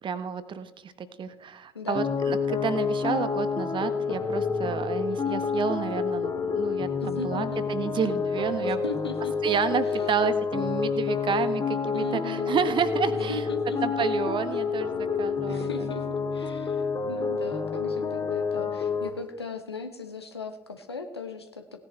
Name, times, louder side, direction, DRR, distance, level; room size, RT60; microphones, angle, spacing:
voice 1, 0.0-8.8 9.4-13.4 13.8-15.7, right 6 dB, 40° right, 12 dB, 1.1 m, -30 dB
voice 2, 1.7-2.0 7.0-7.6 8.7-9.4 9.8-10.1 11.9-12.6 13.1-13.8 15.5-21.8, left 4 dB, 85° left, 7 dB, 1.1 m, -38 dB
sound 1, 1.9-19.1, left 5 dB, 30° left, 2.1 m, -28 dB
17.0 x 10.0 x 4.4 m, 0.98 s
figure-of-eight pair, 55°, 13 cm